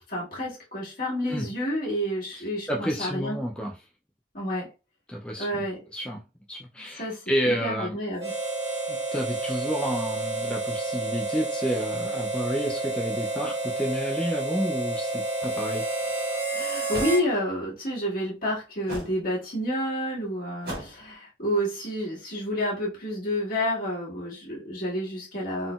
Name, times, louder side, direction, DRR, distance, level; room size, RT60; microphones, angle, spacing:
voice 1, 0.1-3.4 4.3-4.7 5.4-5.8 7.0-7.1 7.5-8.3 16.6-25.7, equal, 50° left, -5 dB, 1.9 m, -29 dB
voice 2, 2.7-3.7 5.1-5.7 5.9-6.2 6.5-8.0 8.9-15.9, equal, 5° left, -1 dB, 0.4 m, -30 dB
Harmonica, 8.2-17.3, right 2 dB, 20° right, 1.7 m, -30 dB
Kung-Fu Whooshes, 16.0-16.1 16.9-17.2 18.9-19.2 20.6-21.0, right 1 dB, 55° right, 1.9 m, -35 dB
3.9 x 3.8 x 2.3 m, 0.30 s
head